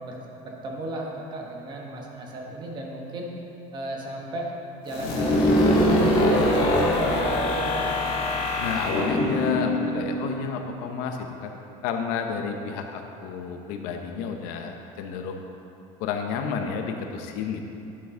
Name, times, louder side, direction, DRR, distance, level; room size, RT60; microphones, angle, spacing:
voice 1, 0.0-3.3 3.7-4.5 4.8-8.0, right 1 dB, 30° right, 0 dB, 1.1 m, -35 dB
sound 1, 4.9-10.6, left 1 dB, 40° left, 1.5 m, -23 dB
voice 2, 8.6-11.5 11.8-15.4 16.0-17.7, left 6 dB, 75° left, 4 dB, 0.8 m, -31 dB
11.0 x 5.6 x 3.7 m, 2.8 s
cardioid pair, 150°, 14 cm